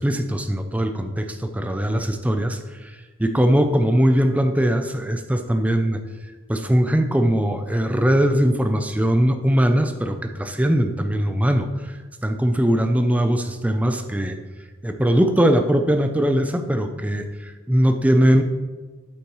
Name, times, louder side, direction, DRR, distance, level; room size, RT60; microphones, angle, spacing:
voice 1, 0.0-6.0 6.5-12.0 12.2-14.4 14.8-18.4, equal, 5° right, 7 dB, 0.4 m, -20 dB
8.4 x 8.3 x 3.1 m, 1.3 s
head